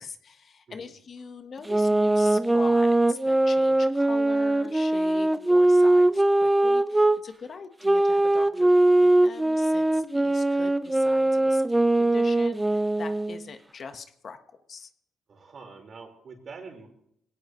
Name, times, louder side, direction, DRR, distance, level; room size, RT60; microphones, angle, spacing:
voice 1, 0.0-8.7 9.0-14.4 14.7-14.9, left 5 dB, 50° left, 8 dB, 1.4 m, -42 dB
sound 1, 1.7-7.2 7.8-13.4, right 1 dB, 10° right, 0.6 m, -21 dB
voice 2, 15.3-16.9, right 4 dB, 50° right, 2 dB, 4.8 m, -45 dB
22.0 x 17.5 x 3.2 m, 0.73 s
cardioid pair, 90°, 0 cm